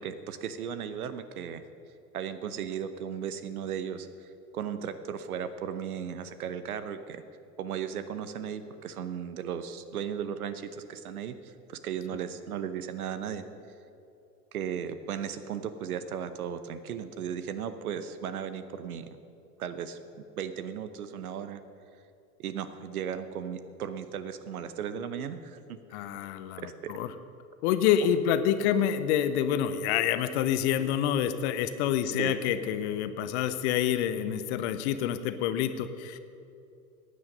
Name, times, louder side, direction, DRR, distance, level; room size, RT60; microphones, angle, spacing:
voice 1, 0.0-1.6 2.1-4.3 4.5-7.2 7.6-13.5 14.5-19.1 19.6-21.6 22.4-25.8 26.6-26.9 32.2-32.4, right 8 dB, 65° right, 12 dB, 1.0 m, -36 dB
voice 2, 25.9-27.1 27.6-36.2, left 9 dB, 45° left, 11 dB, 0.9 m, -27 dB
15.5 x 9.7 x 5.3 m, 2.7 s
figure-of-eight pair, 85°, 46 cm